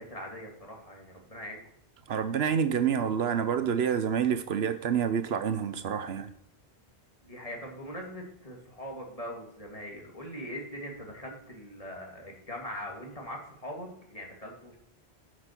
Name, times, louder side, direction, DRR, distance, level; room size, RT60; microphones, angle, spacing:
voice 1, 0.0-1.6 7.2-14.8, equal, 35° left, 0 dB, 2.1 m, -41 dB
voice 2, 2.1-6.3, right 7 dB, 75° right, 11 dB, 1.0 m, -28 dB
11.5 x 6.1 x 4.4 m, 0.70 s
omnidirectional pair, 1.1 m